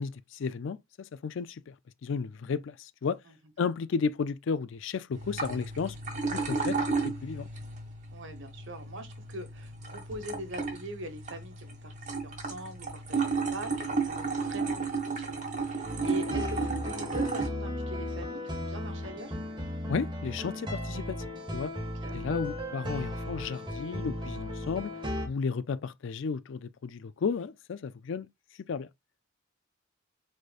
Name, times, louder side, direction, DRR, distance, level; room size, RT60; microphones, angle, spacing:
voice 1, 0.0-1.7 2.0-3.2 3.6-6.0 6.3-6.8 7.0-7.5 19.9-21.7 22.1-24.9 25.2-28.3 28.7-28.9, left 5 dB, 65° left, 0.4 m, -33 dB
sound 1, 5.1-17.5, right 4 dB, 40° right, 1.7 m, -33 dB
voice 2, 8.1-19.4 21.8-22.2, equal, 65° right, 1.3 m, -43 dB
sound 2, 15.8-25.3, left 1 dB, 25° right, 1.7 m, -36 dB
4.9 x 4.3 x 2.4 m
head